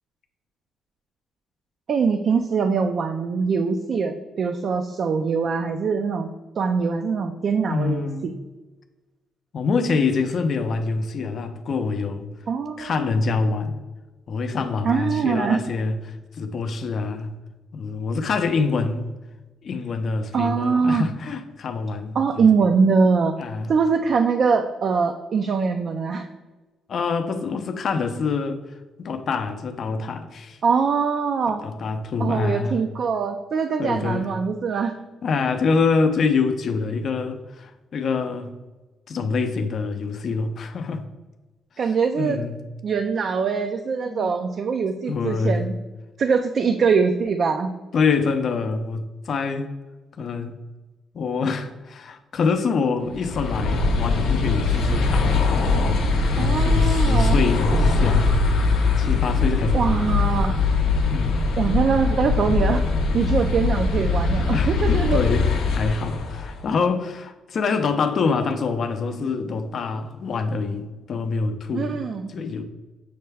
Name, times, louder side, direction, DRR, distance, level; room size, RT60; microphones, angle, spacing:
voice 1, 1.9-6.3 6.6-8.3 12.5-13.2 14.8-15.6 20.3-21.1 22.2-23.4 23.7-26.3 30.6-31.6 32.2-34.9 41.8-42.4 42.8-45.7 46.2-47.7 56.4-57.4 59.7-60.6 61.6-62.8 63.1-65.2 71.7-72.3, right 5 dB, 55° right, 6 dB, 0.3 m, -22 dB
voice 2, 7.7-8.3 9.5-12.3 12.8-13.8 14.3-17.3 17.7-19.1 19.6-22.4 23.4-23.7 26.9-28.6 29.0-30.6 31.6-32.8 33.8-34.3 35.2-38.5 39.1-41.0 42.2-42.6 44.1-44.3 45.1-45.7 47.9-49.7 50.2-50.5 51.1-55.5 56.3-58.2 59.0-60.2 61.1-61.4 63.0-63.1 64.4-72.0 72.3-72.6, left 4 dB, 55° left, 7 dB, 0.4 m, -25 dB
sound 1, 53.1-66.6, left 3 dB, 90° left, 0.7 m, -21 dB
6.4 x 2.2 x 3.3 m, 1.2 s
cardioid pair, 90°, 0 cm